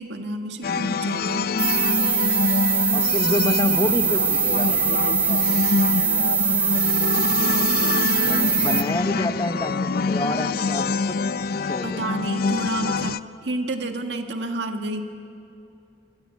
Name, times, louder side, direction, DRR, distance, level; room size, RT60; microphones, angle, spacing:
voice 1, 0.0-1.5 7.4-8.6 11.8-15.0, right 2 dB, 85° right, 5 dB, 1.6 m, -30 dB
sound 1, 0.6-13.2, left 4 dB, 55° left, 0.5 m, -26 dB
sound 2, 1.6-8.8, right 5 dB, 10° right, 0.6 m, -22 dB
voice 2, 2.9-5.4 8.2-11.2 11.7-12.0, left 1 dB, 25° left, 7 dB, 1.2 m, -28 dB
24.5 x 18.5 x 9.7 m, 2.7 s
head